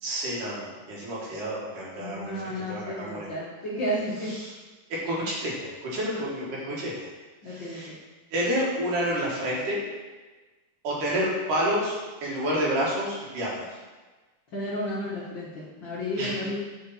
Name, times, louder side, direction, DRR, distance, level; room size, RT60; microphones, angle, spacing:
voice 1, 0.0-3.3 4.3-4.5 4.9-6.9 7.5-7.9 8.3-9.8 10.8-12.0 12.2-13.7 16.2-16.4, equal, 85° right, -4 dB, 3.3 m, -29 dB
voice 2, 2.0-4.3 7.4-7.8 14.5-16.6, equal, 55° left, -7 dB, 1.4 m, -32 dB
8.2 x 5.2 x 4.2 m, 1.3 s
omnidirectional pair, 3.6 m